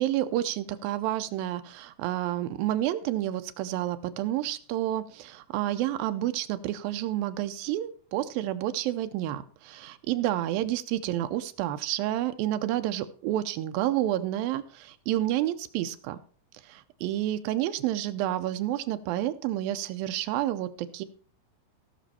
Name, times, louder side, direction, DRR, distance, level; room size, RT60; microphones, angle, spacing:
voice 1, 0.0-16.2 16.6-21.0, right 13 dB, 85° right, 10 dB, 2.5 m, -29 dB
18.0 x 6.2 x 4.2 m, 0.39 s
omnidirectional pair, 4.1 m